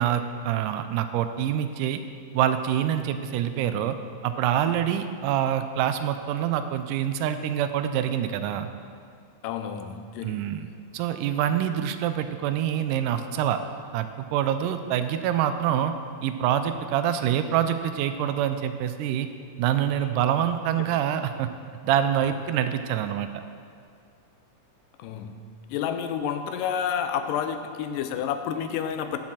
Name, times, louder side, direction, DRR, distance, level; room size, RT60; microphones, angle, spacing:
voice 1, 0.0-2.0 2.3-4.0 4.2-8.7 10.2-10.7 10.9-13.6 13.9-15.9 16.2-19.3 19.6-21.5 21.8-23.4, right 10 dB, 85° right, 9 dB, 2.1 m, -26 dB
voice 2, 9.4-10.4 22.2-22.3 25.0-25.3 25.7-29.2, left 8 dB, 85° left, 8 dB, 2.2 m, -29 dB
15.0 x 6.1 x 4.3 m, 2.3 s
omnidirectional pair, 3.7 m